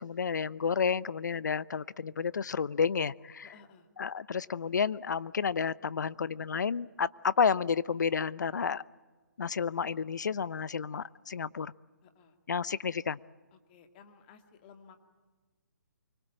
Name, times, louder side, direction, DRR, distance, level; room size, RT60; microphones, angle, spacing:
voice 1, 0.0-3.5 4.0-8.8 9.4-11.7 12.5-13.2, left 6 dB, 70° left, 20 dB, 0.8 m, -31 dB
voice 2, 3.4-3.9 12.0-12.4 13.5-15.0, left 6 dB, 30° left, 7 dB, 2.3 m, -56 dB
25.0 x 23.5 x 8.9 m, 1.3 s
hypercardioid pair, 150°, 10 cm